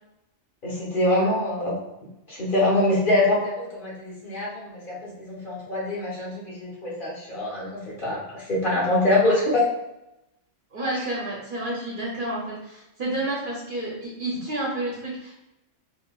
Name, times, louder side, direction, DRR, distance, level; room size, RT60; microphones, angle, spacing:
voice 1, 0.6-1.7 2.3-9.7, left 1 dB, 45° left, -6 dB, 1.0 m, -24 dB
voice 2, 10.7-15.3, right 1 dB, 55° right, -5 dB, 0.7 m, -30 dB
4.1 x 2.1 x 2.2 m, 0.90 s
omnidirectional pair, 1.3 m